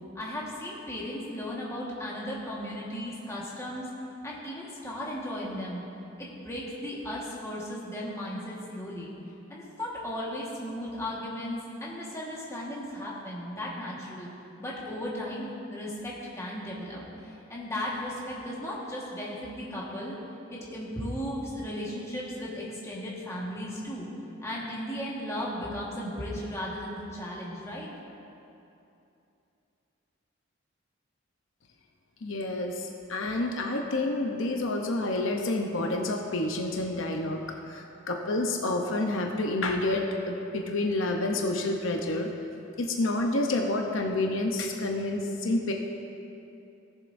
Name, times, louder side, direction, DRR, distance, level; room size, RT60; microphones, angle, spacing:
voice 1, 0.1-3.9 4.2-5.8 6.2-9.1 9.5-14.3 14.6-20.2 20.5-24.1 24.4-27.9, equal, 15° left, -5 dB, 1.5 m, -36 dB
voice 2, 32.2-37.4 37.7-42.3 42.8-45.7, left 2 dB, 75° left, 2 dB, 0.8 m, -29 dB
17.5 x 7.3 x 2.6 m, 2.8 s
head